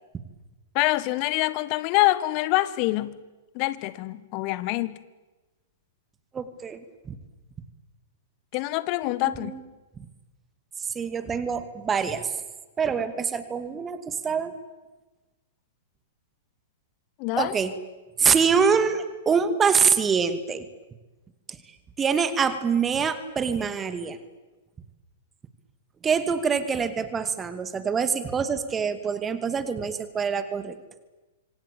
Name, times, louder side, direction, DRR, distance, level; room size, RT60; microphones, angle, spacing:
voice 1, 0.7-3.2 3.5-5.0 8.5-9.5 17.2-17.5, left 18 dB, 40° left, 1.5 m, -25 dB
voice 2, 6.3-7.2 9.2-9.6 10.8-12.3 12.8-14.5 17.4-17.7 18.2-20.7 22.0-24.2 26.0-30.7, right 6 dB, 20° right, 2.4 m, -25 dB
26.5 x 25.5 x 8.7 m
figure-of-eight pair, 105°, 0 cm